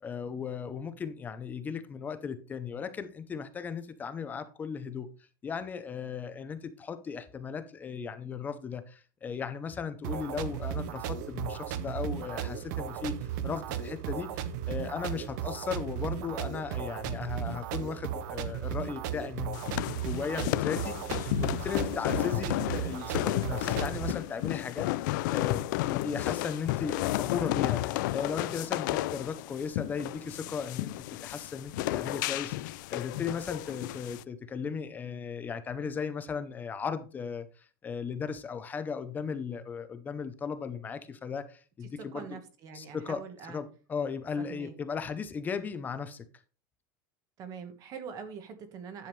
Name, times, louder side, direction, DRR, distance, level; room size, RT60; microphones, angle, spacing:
voice 1, 0.0-5.1 5.4-25.6 25.9-42.3 42.7-46.3, left 6 dB, 15° left, 0.6 m, -37 dB
sound 1, 10.0-24.1, right 9 dB, 60° right, 0.8 m, -35 dB
sound 2, 19.5-34.2, left 16 dB, 65° left, 0.4 m, -32 dB
voice 2, 42.1-43.6 44.4-44.7 47.4-49.1, right 6 dB, 30° right, 1.3 m, -43 dB
10.5 x 7.1 x 3.2 m
supercardioid pair, 170°, 11 cm